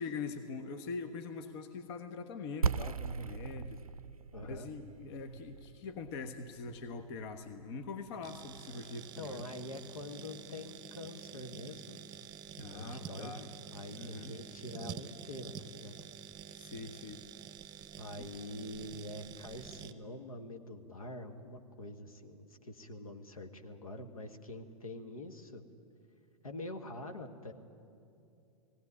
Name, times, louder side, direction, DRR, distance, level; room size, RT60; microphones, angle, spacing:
voice 1, 0.0-3.8 4.4-9.5 12.6-13.4 13.9-14.3 16.5-17.2 18.2-18.3, left 4 dB, 45° left, 8 dB, 1.2 m, -43 dB
sound 1, 2.6-8.4, right 6 dB, 85° right, 0.4 m, -38 dB
voice 2, 4.3-4.7 9.2-12.0 12.6-16.0 18.0-25.6 26.4-27.5, left 1 dB, 75° left, 6 dB, 1.6 m, -45 dB
sound 2, 8.2-19.9, right 9 dB, 25° right, 0.9 m, -48 dB
18.5 x 17.0 x 9.7 m, 2.6 s
figure-of-eight pair, 105°, 18 cm